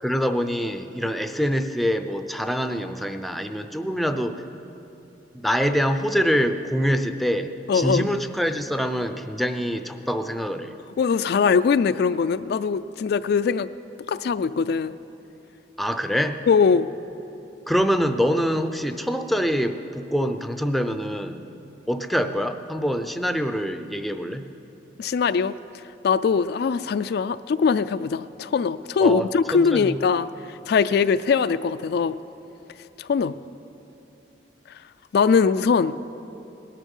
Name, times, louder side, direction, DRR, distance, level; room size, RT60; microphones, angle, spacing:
voice 1, 0.0-4.4 5.3-10.7 15.8-16.4 17.7-21.4 21.9-24.4 29.0-30.0, equal, ahead, 8 dB, 0.5 m, -25 dB
voice 2, 7.7-8.1 11.0-13.7 14.1-14.9 16.5-16.9 25.0-25.5 26.0-32.2 33.0-33.3 35.1-35.9, left 5 dB, 60° left, 13 dB, 0.3 m, -21 dB
18.5 x 10.5 x 5.5 m, 2.8 s
head